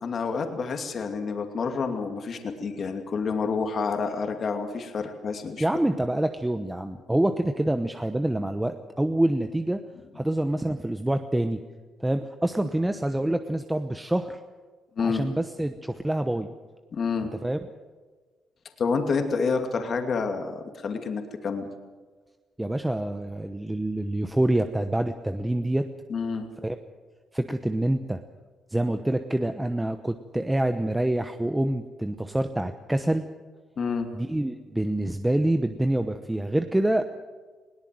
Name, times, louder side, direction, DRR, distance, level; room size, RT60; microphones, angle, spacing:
voice 1, 0.0-5.7 15.0-15.2 16.9-17.3 18.8-21.7 26.1-26.5 33.8-34.1, left 5 dB, 50° left, 5 dB, 2.6 m, -28 dB
voice 2, 5.6-9.8 10.1-11.6 12.0-14.4 15.0-16.5 17.4-17.6 22.6-25.9 26.6-26.8 27.3-28.2 28.7-33.3 34.1-37.1, right 1 dB, 10° right, 8 dB, 1.0 m, -26 dB
20.5 x 17.5 x 7.7 m, 1.4 s
cardioid pair, 90°, 0 cm